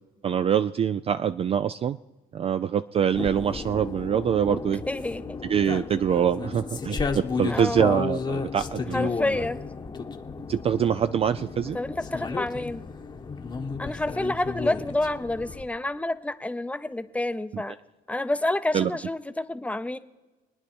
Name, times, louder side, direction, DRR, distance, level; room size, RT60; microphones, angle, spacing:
voice 1, 0.2-2.0 2.3-4.8 5.4-9.1 10.5-11.8 18.7-18.9, right 8 dB, 35° right, 12 dB, 0.4 m, -24 dB
XY Stadium ambience, 3.1-15.6, left 4 dB, 25° left, 1.1 m, -33 dB
voice 2, 4.9-5.4 7.5-8.0 8.9-9.6 11.7-12.8 13.8-17.8 18.1-20.0, left 2 dB, 10° left, 11 dB, 0.7 m, -29 dB
25.0 x 9.7 x 4.4 m, 1.2 s
cardioid pair, 110°, 17 cm